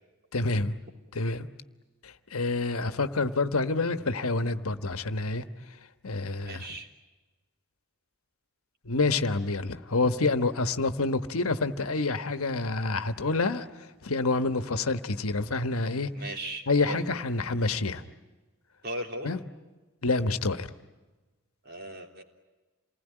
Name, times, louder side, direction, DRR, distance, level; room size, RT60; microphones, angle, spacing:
voice 1, 0.3-0.7 1.1-1.5 2.0-5.4 6.0-6.7 8.8-13.7 14.0-16.1 16.7-18.0 19.2-19.4 20.0-20.7, left 3 dB, 75° left, 10 dB, 1.2 m, -27 dB
voice 2, 6.4-6.9 16.1-17.0 18.8-19.3 21.6-22.2, right 1 dB, 45° right, 3 dB, 3.4 m, -37 dB
28.0 x 20.0 x 9.9 m, 1.2 s
head